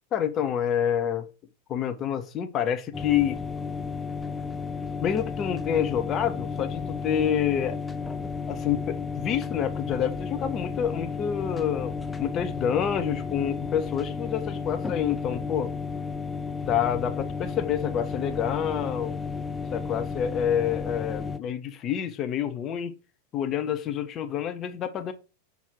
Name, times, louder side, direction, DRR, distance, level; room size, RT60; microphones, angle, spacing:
voice 1, 0.1-1.3 1.7-3.4 5.0-7.8 8.5-15.7 16.6-19.2 19.7-22.9 23.3-25.1, left 9 dB, 30° left, 0.8 m, -28 dB
sound 1, 2.9-21.4, left 5 dB, 10° left, 0.5 m, -33 dB
5.8 x 4.5 x 3.7 m
figure-of-eight pair, 90°, 0 cm